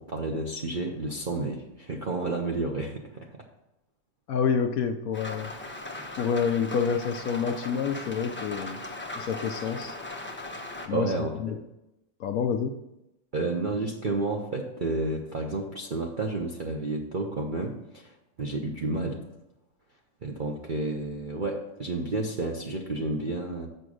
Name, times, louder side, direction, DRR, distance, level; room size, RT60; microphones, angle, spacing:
voice 1, 0.0-3.3 10.9-11.6 13.3-19.2 20.2-23.7, right 2 dB, 50° right, 0 dB, 0.6 m, -31 dB
voice 2, 4.3-5.5 6.2-8.8 9.2-9.9 10.9-11.1 11.4-11.6 12.2-12.8, left 6 dB, 70° left, 6 dB, 0.9 m, -28 dB
Rain, 5.1-10.9, left 2 dB, 15° left, 0.4 m, -38 dB
6.7 x 6.1 x 6.3 m, 0.91 s
omnidirectional pair, 1.9 m